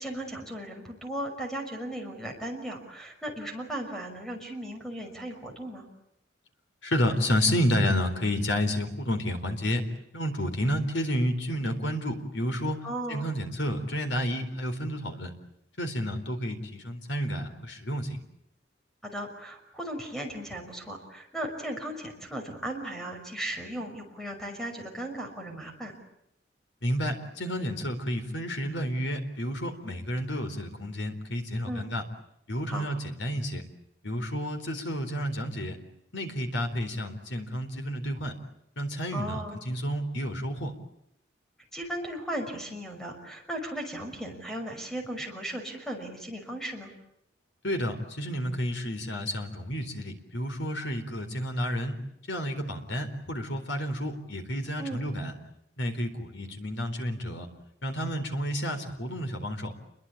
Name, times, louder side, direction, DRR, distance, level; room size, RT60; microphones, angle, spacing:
voice 1, 0.0-5.9 12.8-13.3 19.0-25.9 31.7-31.9 32.7-32.9 39.1-39.6 41.7-46.9 54.8-55.0, right 1 dB, 5° left, 3 dB, 5.8 m, -36 dB
voice 2, 6.8-9.8 10.1-12.8 13.1-15.3 15.8-18.2 26.8-32.0 32.5-33.6 34.0-35.8 36.1-38.3 38.8-40.7 47.6-52.0 52.3-55.3 55.8-57.5 57.8-59.7, equal, 75° left, 7 dB, 4.2 m, -30 dB
28.5 x 22.5 x 8.6 m, 0.80 s
head